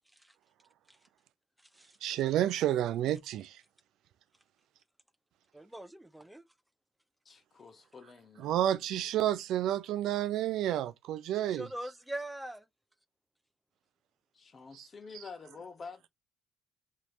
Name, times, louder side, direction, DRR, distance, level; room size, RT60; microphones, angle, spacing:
voice 1, 2.0-3.6 8.4-11.7 14.7-14.9, right 12 dB, 75° right, 0.3 m, -30 dB
voice 2, 5.5-6.4 11.5-12.6, right 1 dB, 5° right, 0.4 m, -41 dB
voice 3, 7.2-8.8 14.3-16.1, left 5 dB, 40° left, 0.8 m, -48 dB
3.1 x 2.9 x 2.5 m
supercardioid pair, 80°, 0 cm